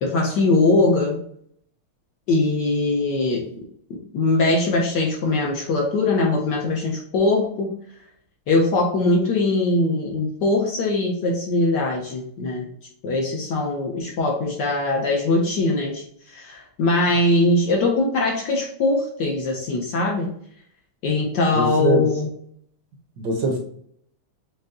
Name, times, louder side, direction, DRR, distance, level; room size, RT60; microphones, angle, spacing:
voice 1, 0.0-1.2 2.3-3.5 4.1-7.7 8.5-12.7 13.0-20.3 21.0-22.3, left 2 dB, 65° left, -1 dB, 1.1 m, -21 dB
voice 2, 21.5-22.1 23.2-23.6, right 3 dB, 65° right, 1 dB, 1.3 m, -22 dB
6.6 x 2.2 x 2.5 m, 0.64 s
omnidirectional pair, 2.4 m